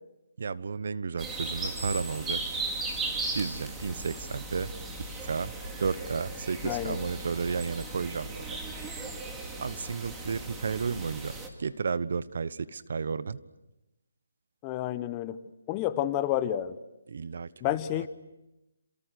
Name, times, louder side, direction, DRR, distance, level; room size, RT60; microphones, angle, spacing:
voice 1, 0.4-2.4 3.3-4.7 5.0-5.5 5.8-8.6 9.6-11.3 11.6-13.4 17.1-18.1, right 5 dB, 60° right, 16 dB, 1.1 m, -32 dB
sound 1, 1.2-11.5, right 2 dB, 10° right, 2.5 m, -37 dB
voice 2, 6.6-7.0 14.6-15.4 15.7-16.8 17.6-18.1, left 12 dB, 20° left, 13 dB, 1.0 m, -29 dB
28.5 x 27.5 x 6.4 m, 0.94 s
hypercardioid pair, 160°, 0 cm